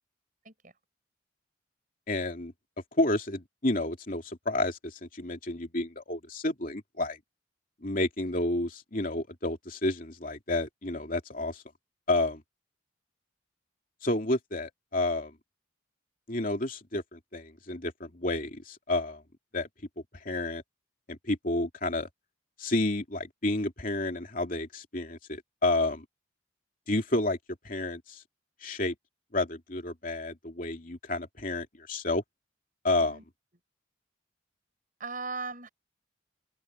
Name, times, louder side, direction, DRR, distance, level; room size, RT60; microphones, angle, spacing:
voice 1, 2.1-2.5 3.0-7.2 7.8-11.6 12.1-12.4 14.0-15.3 16.3-19.2 19.5-19.7 20.2-20.6 21.1-22.1 22.6-26.0 26.9-27.4 27.6-28.2 28.6-28.9 29.3-32.2 32.8-33.2, left 2 dB, 45° left, 3.0 m, -30 dB
voice 2, 35.0-35.7, right 4 dB, 40° right, 6.8 m, -38 dB
open air
head